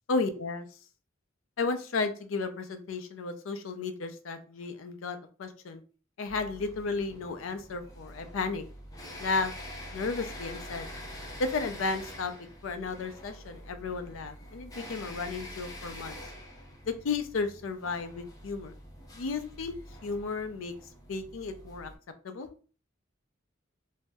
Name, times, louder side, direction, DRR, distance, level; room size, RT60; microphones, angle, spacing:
voice 1, 0.1-0.7 1.6-5.8 6.2-8.6 9.2-9.5 9.9-10.9 11.4-16.2 16.8-18.7 19.2-19.7 20.0-20.7 21.1-21.9 22.2-22.5, left 4 dB, 85° left, 8 dB, 0.5 m, -33 dB
sound 1, 6.3-21.9, left 1 dB, 20° left, 0.5 m, -46 dB
2.6 x 2.1 x 3.4 m, 0.38 s
head